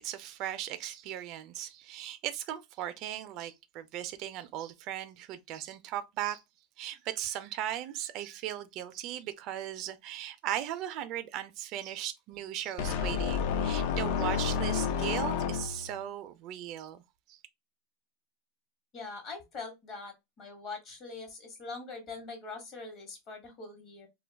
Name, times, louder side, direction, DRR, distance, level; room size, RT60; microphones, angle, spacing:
voice 1, 0.0-6.4 6.8-17.0 17.3-17.4, right 12 dB, 50° right, 0.3 m, -37 dB
sound 1, 12.8-16.0, left 6 dB, 65° left, 0.4 m, -30 dB
voice 2, 18.9-24.1, left 4 dB, 40° left, 1.1 m, -43 dB
2.2 x 2.2 x 3.2 m
supercardioid pair, 135°, 0 cm